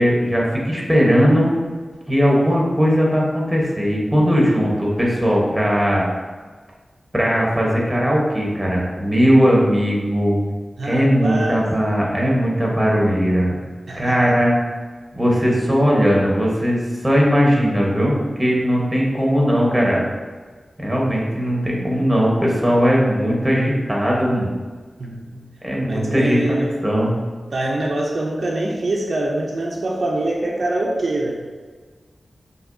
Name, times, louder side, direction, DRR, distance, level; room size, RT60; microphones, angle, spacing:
voice 1, 0.0-1.5 2.1-6.0 7.1-10.4 10.8-13.6 14.0-14.5 15.1-20.0 20.8-24.5 25.6-27.1, equal, 10° right, -3 dB, 1.1 m, -18 dB
voice 2, 10.8-11.6 13.9-14.3 25.0-25.4 25.9-26.9 27.5-31.3, right 1 dB, 60° right, -2 dB, 0.6 m, -24 dB
5.9 x 2.9 x 2.7 m, 1.5 s
wide cardioid pair, 90°, 0 cm